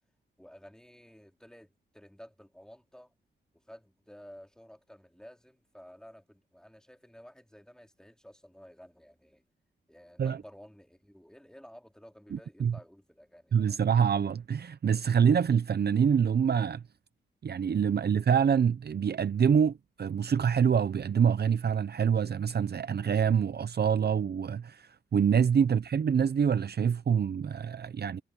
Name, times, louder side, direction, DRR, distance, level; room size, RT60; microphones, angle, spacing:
voice 1, 0.4-3.1 3.7-9.4 9.9-13.8, equal, 5° left, 3.7 m, -53 dB
voice 2, 12.3-12.8 13.5-16.8 17.4-28.2, right 7 dB, 55° right, 0.8 m, -26 dB
cardioid pair, 70°, 20 cm